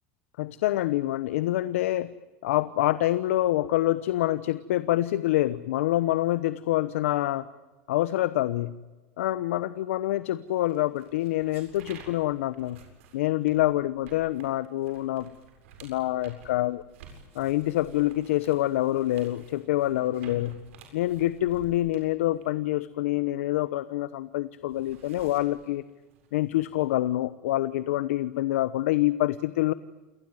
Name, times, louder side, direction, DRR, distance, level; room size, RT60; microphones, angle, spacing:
voice 1, 0.4-2.1 2.4-7.5 7.9-8.7 9.2-12.8 13.1-15.3 15.8-16.8 17.3-20.6 20.9-25.8 26.3-29.7, left 15 dB, 85° left, 16 dB, 1.0 m, -26 dB
sound 1, 10.5-24.0 24.3-27.0, right 5 dB, 80° right, 7.7 m, -53 dB
29.0 x 19.0 x 9.2 m, 1.2 s
supercardioid pair, 120°, 7 cm